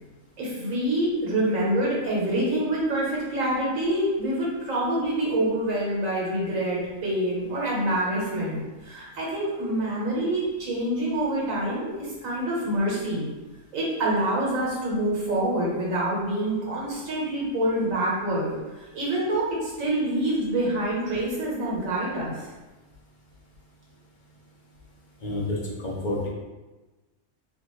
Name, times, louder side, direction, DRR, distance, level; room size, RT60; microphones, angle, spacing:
voice 1, 0.4-13.3 13.7-22.5, right 1 dB, 80° right, -5 dB, 1.5 m, -26 dB
voice 2, 25.2-25.6 25.8-26.3, left 2 dB, 40° left, -5 dB, 0.8 m, -28 dB
4.3 x 2.5 x 3.0 m, 1.2 s
omnidirectional pair, 1.4 m